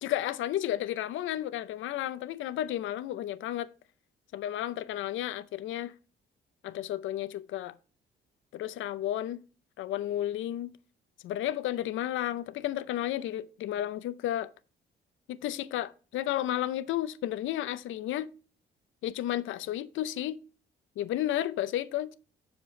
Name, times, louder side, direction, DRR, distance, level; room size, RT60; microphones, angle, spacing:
voice 1, 0.0-3.7 4.3-5.9 6.6-7.7 8.5-9.4 9.8-10.7 11.2-14.5 15.3-18.3 19.0-20.4 21.0-22.1, left 12 dB, 80° left, 0.6 m, -32 dB
6.7 x 5.2 x 5.7 m
cardioid pair, 90°, 20 cm